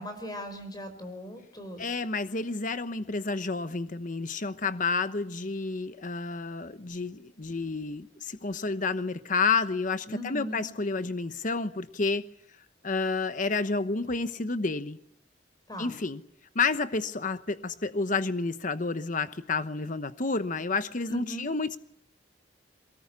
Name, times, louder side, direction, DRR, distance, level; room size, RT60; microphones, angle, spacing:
voice 1, 0.0-2.0 10.1-10.7 15.7-16.0 21.1-21.5, equal, 20° left, 8 dB, 5.5 m, -39 dB
voice 2, 1.8-12.3 12.8-15.0 15.8-16.2 16.5-21.8, left 4 dB, 45° left, 11 dB, 1.0 m, -30 dB
23.0 x 20.0 x 9.8 m, 0.70 s
head